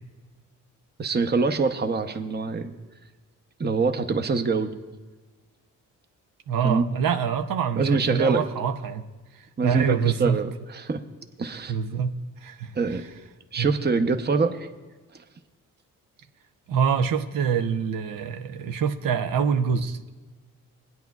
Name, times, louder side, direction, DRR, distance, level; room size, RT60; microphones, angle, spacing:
voice 1, 1.0-2.7 3.6-4.7 6.6-6.8 7.8-8.5 9.6-11.0 11.4-11.8 12.7-13.0 13.5-14.7, right 4 dB, 30° right, 0.8 m, -24 dB
voice 2, 6.5-9.1 9.3-10.4 11.7-12.1 12.4-12.7 13.6-13.7 16.7-20.1, right 7 dB, 75° right, 0.7 m, -25 dB
20.0 x 9.2 x 2.4 m
cardioid pair, 70°, 34 cm